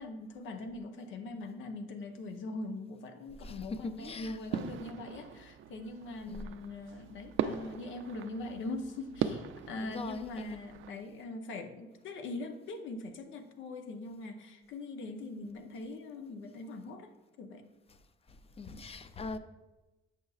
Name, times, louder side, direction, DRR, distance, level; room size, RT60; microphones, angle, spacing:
voice 1, 0.0-17.1 17.4-17.7 18.7-18.8, left 2 dB, 80° left, 0.7 m, -42 dB
voice 2, 3.4-4.8 6.3-6.4 9.8-10.6 18.6-19.4, left 3 dB, 30° left, 0.5 m, -41 dB
sound 1, 4.5-10.9, right 9 dB, 80° right, 0.4 m, -39 dB
8.2 x 5.5 x 2.4 m
cardioid pair, 90°, 20 cm